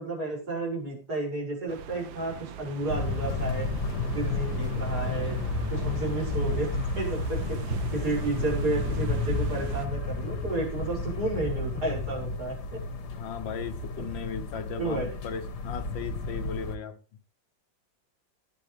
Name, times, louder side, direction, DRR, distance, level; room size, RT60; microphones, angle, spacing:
voice 1, 0.0-3.7 4.0-5.4 5.7-6.7 7.0-12.8 14.3-14.4 14.8-15.1, right 2 dB, 55° right, 6.9 m, -32 dB
sound 1, 1.7-9.9, right 8 dB, 85° right, 1.7 m, -39 dB
sound 2, 2.9-16.8, left 3 dB, 60° left, 1.9 m, -32 dB
voice 2, 13.1-17.0, left 7 dB, 80° left, 1.8 m, -37 dB
19.0 x 9.7 x 3.4 m
omnidirectional pair, 2.1 m